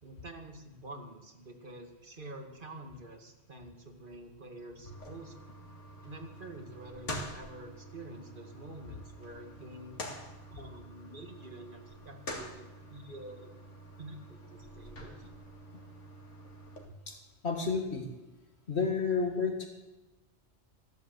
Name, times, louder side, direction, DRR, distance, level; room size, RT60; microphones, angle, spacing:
voice 1, 0.0-5.4 6.0-10.0 10.5-13.5 14.0-15.3, right 1 dB, 45° right, 4 dB, 2.3 m, -48 dB
sound 1, 4.8-16.9, equal, 80° left, 2.6 m, -46 dB
voice 2, 17.4-18.1 18.7-19.7, left 5 dB, 65° left, 4 dB, 2.1 m, -30 dB
15.0 x 11.5 x 8.1 m, 1.1 s
omnidirectional pair, 1.2 m